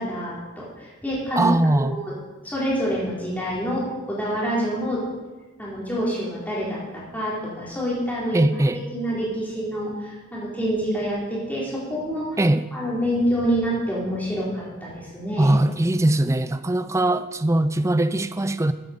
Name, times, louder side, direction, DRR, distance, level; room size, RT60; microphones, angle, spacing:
voice 1, 0.0-2.1 2.4-5.0 5.6-8.4 8.9-12.4 12.7-15.5, equal, 10° left, -7 dB, 4.2 m, -27 dB
voice 2, 1.4-2.0 8.3-8.8 12.4-12.7 15.4-18.7, right 1 dB, 15° right, 12 dB, 0.4 m, -21 dB
14.0 x 9.4 x 5.3 m, 1.2 s
head